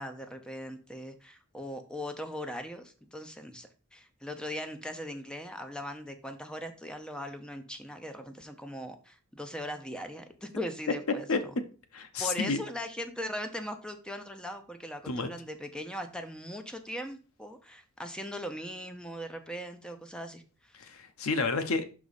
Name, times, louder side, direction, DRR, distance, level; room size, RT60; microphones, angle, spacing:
voice 1, 0.0-11.3 12.2-20.8, equal, 5° left, 0.6 m, -39 dB
voice 2, 11.9-12.6 15.1-15.3 20.8-21.9, left 4 dB, 75° left, 0.8 m, -30 dB
6.0 x 4.8 x 4.1 m
head